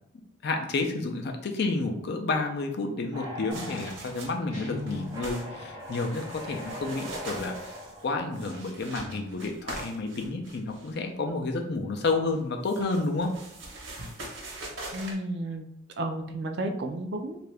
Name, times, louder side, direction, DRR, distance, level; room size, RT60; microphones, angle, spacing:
voice 1, 0.4-7.6 8.0-13.3, left 3 dB, 60° left, 4 dB, 0.5 m, -30 dB
sound 1, 3.1-8.7, left 1 dB, 20° right, 0.6 m, -42 dB
sound 2, 3.5-4.5 4.8-5.5 5.8-11.0 12.3-15.1, right 2 dB, 85° right, 0.9 m, -42 dB
Guitar, 4.5-5.3, left 2 dB, 40° left, 1.5 m, -38 dB
voice 2, 14.9-15.7 16.0-17.4, right 1 dB, 65° right, 5 dB, 0.4 m, -32 dB
2.7 x 2.5 x 3.3 m, 0.80 s
head